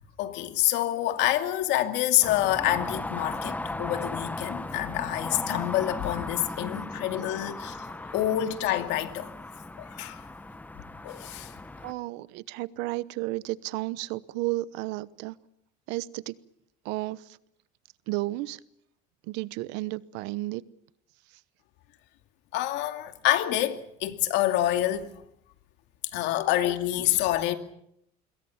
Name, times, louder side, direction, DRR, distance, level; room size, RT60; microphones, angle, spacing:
voice 1, 0.2-7.9 8.1-9.3 10.0-10.2 11.0-11.5 22.5-25.1 26.1-27.6, left 14 dB, 75° left, 2.4 m, -27 dB
sound 1, 2.2-11.9, left 2 dB, 10° left, 1.2 m, -37 dB
voice 2, 11.8-15.3 15.9-16.3 16.8-17.2 18.1-18.6 19.3-20.6, right 19 dB, 85° right, 1.0 m, -32 dB
26.5 x 22.0 x 7.3 m
cardioid pair, 125°, 18 cm